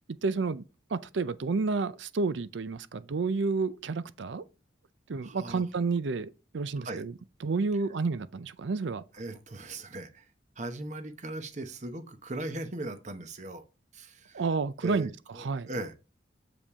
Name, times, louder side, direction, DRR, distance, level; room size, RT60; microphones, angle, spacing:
voice 1, 0.2-0.6 0.9-4.5 5.1-7.1 7.4-9.0 14.3-15.1 15.4-15.7, right 4 dB, 80° right, 0.5 m, -30 dB
voice 2, 5.2-5.6 6.8-7.0 9.2-10.3 10.6-13.7 13.9-14.4 14.8-15.9, right 2 dB, 40° right, 0.8 m, -39 dB
6.9 x 5.2 x 3.5 m
head